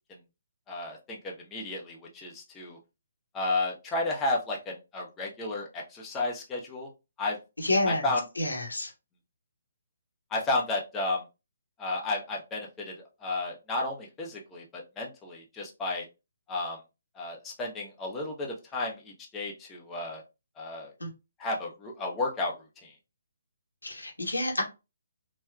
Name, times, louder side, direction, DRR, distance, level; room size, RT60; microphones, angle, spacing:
voice 1, 0.7-2.8 3.3-4.6 4.9-6.9 7.2-7.4 7.9-8.2 10.3-11.2 11.8-12.9 13.2-16.0 16.5-16.8 17.2-20.2 20.6-20.9 21.4-22.5 22.8-22.9, left 2 dB, 15° left, 0.7 m, -32 dB
voice 2, 7.6-8.0 8.4-8.9 21.0-21.1 23.8-24.6, left 1 dB, 80° left, 1.0 m, -28 dB
4.2 x 2.2 x 2.2 m
figure-of-eight pair, 135°, 0 cm